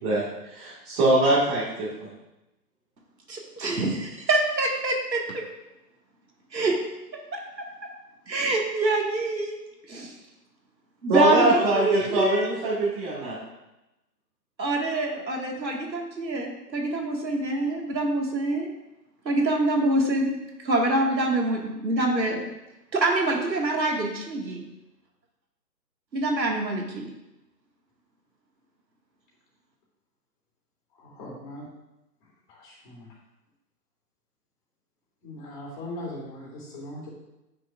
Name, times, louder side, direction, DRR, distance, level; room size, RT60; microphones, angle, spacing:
voice 1, 0.0-2.1 11.1-13.4, right 1 dB, 20° right, -9 dB, 1.7 m, -23 dB
voice 2, 3.3-5.4 6.5-6.8 7.3-7.7 8.3-9.6 9.9-10.2 11.0-12.5 14.6-18.7 19.3-20.3 20.6-22.4 22.9-24.6 26.1-27.1, right 2 dB, 90° right, 1 dB, 1.8 m, -25 dB
voice 3, 30.9-31.7 32.5-33.1 35.2-37.1, left 1 dB, 30° left, -5 dB, 2.6 m, -39 dB
9.4 x 6.1 x 2.4 m, 0.96 s
hypercardioid pair, 145°, 50 cm